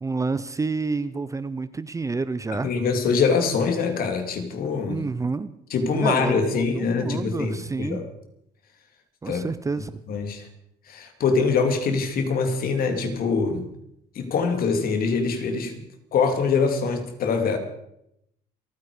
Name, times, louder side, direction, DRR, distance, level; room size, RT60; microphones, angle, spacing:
voice 1, 0.0-2.7 4.9-5.5 5.9-8.1 9.2-10.0, right 4 dB, 20° right, 14 dB, 0.6 m, -29 dB
voice 2, 2.5-5.0 5.7-8.0 9.3-9.4 10.1-10.5 10.9-13.6 14.1-15.8 16.1-17.6, left 5 dB, 60° left, 6 dB, 2.7 m, -24 dB
28.0 x 9.7 x 4.9 m, 0.78 s
cardioid pair, 110°, 17 cm